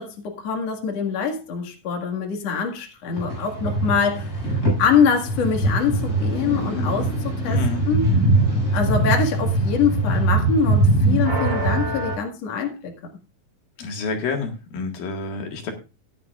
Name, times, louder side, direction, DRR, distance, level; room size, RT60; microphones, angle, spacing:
voice 1, 0.0-4.3 4.8-7.6 7.9-8.1 8.7-12.9, left 6 dB, 50° left, 3 dB, 2.9 m, -24 dB
sound 1, 3.1-12.1, right 2 dB, 25° left, 7.6 m, -22 dB
voice 2, 7.5-7.8 13.8-15.7, left 4 dB, 80° left, 3 dB, 3.6 m, -28 dB
16.0 x 10.5 x 2.5 m, 0.29 s
omnidirectional pair, 4.0 m